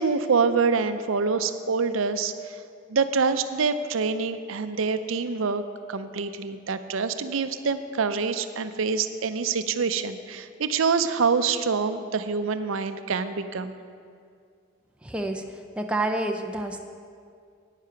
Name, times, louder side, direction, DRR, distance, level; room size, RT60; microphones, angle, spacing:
voice 1, 0.0-2.6 2.9-5.6 5.9-13.7, right 5 dB, 80° right, 10 dB, 0.5 m, -26 dB
voice 2, 15.0-15.4 15.8-16.8, right 2 dB, 5° right, 4 dB, 0.4 m, -28 dB
9.7 x 9.1 x 5.7 m, 2.2 s
head